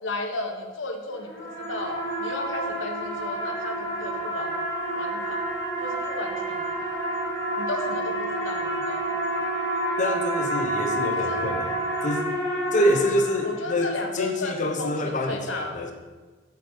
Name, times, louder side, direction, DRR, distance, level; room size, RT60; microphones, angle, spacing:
voice 1, 0.0-4.6 4.9-5.4 5.8-6.9 7.6-9.2 11.2-11.4 13.4-15.8, left 2 dB, 85° left, 4 dB, 1.1 m, -34 dB
sound 1, 1.1-13.9, right 1 dB, 15° left, 2.2 m, -29 dB
voice 2, 10.0-12.2 12.7-15.9, left 1 dB, 40° left, 3 dB, 0.8 m, -26 dB
8.3 x 4.2 x 6.3 m, 1.3 s
head